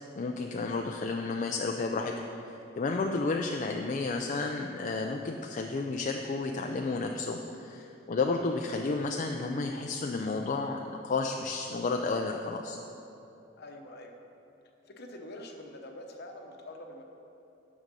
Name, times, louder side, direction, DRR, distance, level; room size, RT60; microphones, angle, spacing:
voice 1, 0.2-2.1 2.5-12.8, left 3 dB, 40° left, 3 dB, 0.4 m, -32 dB
voice 2, 13.6-14.2 14.9-17.0, left 1 dB, 55° left, 3 dB, 0.9 m, -45 dB
9.0 x 6.4 x 5.3 m, 2.9 s
head